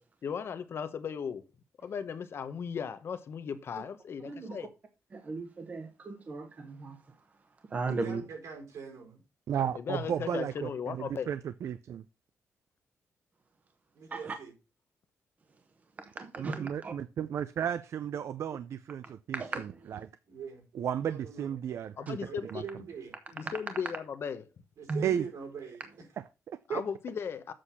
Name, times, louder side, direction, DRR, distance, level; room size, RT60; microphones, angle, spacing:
voice 1, 0.2-1.5 1.8-4.7 9.7-11.3 22.0-22.7 23.3-24.4 26.7-27.5, left 7 dB, 50° left, 0.8 m, -36 dB
voice 2, 4.2-4.6 5.1-7.0 7.7-8.2 14.1-14.3 16.2-16.9 19.3-20.0 23.4-23.5 24.9-25.0, right 3 dB, 30° right, 1.0 m, -36 dB
voice 3, 7.8-9.2 13.9-14.5 20.3-20.6 21.0-21.6 22.3-23.1 24.8-25.8, right 6 dB, 75° right, 4.8 m, -43 dB
voice 4, 9.5-12.0 16.4-20.1 20.7-22.2 22.5-22.6 25.0-25.3 26.2-26.8, right 9 dB, 60° right, 0.5 m, -34 dB
7.6 x 6.4 x 5.7 m
wide cardioid pair, 175°, 5 cm